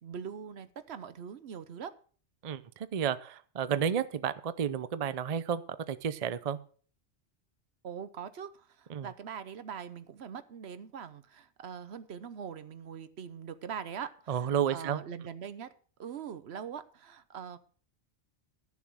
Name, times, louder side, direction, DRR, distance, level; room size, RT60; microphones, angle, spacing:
voice 1, 0.0-1.9 7.8-15.7 16.0-17.6, right 7 dB, 70° right, 13 dB, 1.0 m, -42 dB
voice 2, 2.4-5.6 5.9-6.6 8.9-9.1 14.3-15.0, right 8 dB, 45° right, 14 dB, 0.6 m, -31 dB
12.5 x 7.1 x 6.1 m, 0.43 s
omnidirectional pair, 1.1 m